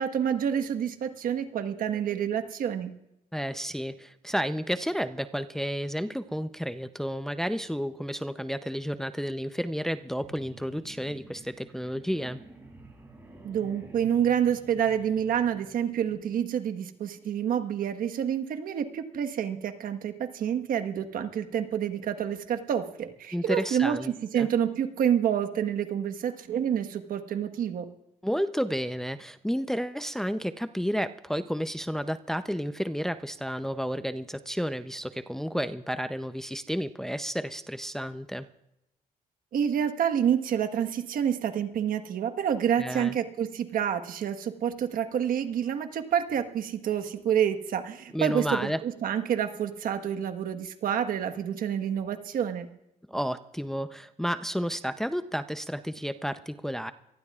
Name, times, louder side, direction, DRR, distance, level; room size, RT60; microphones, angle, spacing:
voice 1, 0.0-2.9 13.4-27.9 39.5-52.7, right 9 dB, 70° right, 7 dB, 1.4 m, -28 dB
voice 2, 3.3-12.4 23.3-24.5 28.2-38.5 42.8-43.2 48.1-48.8 53.1-56.9, equal, 5° left, 10 dB, 0.6 m, -31 dB
sound 1, 10.1-16.3, right 2 dB, 15° right, 6.9 m, -51 dB
25.0 x 18.5 x 2.5 m, 0.85 s
cardioid pair, 95°, 15 cm